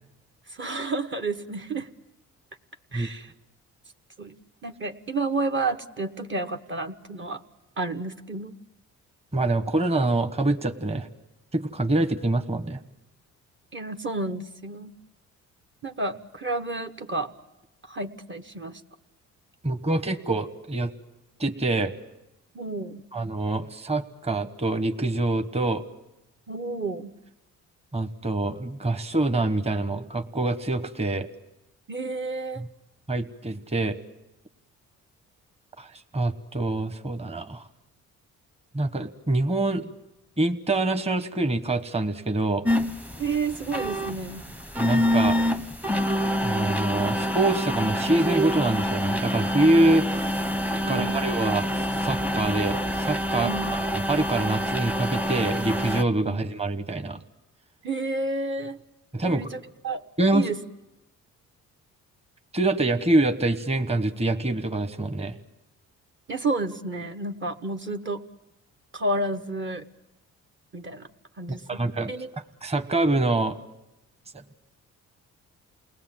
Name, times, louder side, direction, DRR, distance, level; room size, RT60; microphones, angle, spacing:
voice 1, 0.5-1.9 2.9-3.3 4.2-4.3 4.6-7.4 7.8-8.6 13.7-14.9 15.8-17.3 17.8-18.8 22.5-23.0 26.5-27.1 31.9-32.6 43.2-44.4 50.8-51.2 53.4-53.7 56.3-56.4 57.8-58.8 59.2-60.0 60.3-60.6 66.3-68.2 68.9-69.8 70.7-71.1 71.4-71.6 72.1-72.3, right 3 dB, 40° right, 4 dB, 1.3 m, -30 dB
voice 2, 9.3-11.1 11.5-12.8 19.6-20.9 21.4-21.9 23.1-25.8 27.9-31.3 32.6-32.7 33.1-34.0 35.8-37.7 38.7-39.9 40.4-42.7 44.8-45.4 46.4-50.3 50.8-57.2 59.1-59.5 60.2-60.5 62.5-65.3 71.5-72.1 72.6-73.6, right 2 dB, 20° right, 8 dB, 1.3 m, -25 dB
sound 1, 42.6-56.0, equal, 5° right, 0.8 m, -26 dB
29.0 x 19.5 x 7.6 m, 0.95 s
cardioid pair, 90°, 30 cm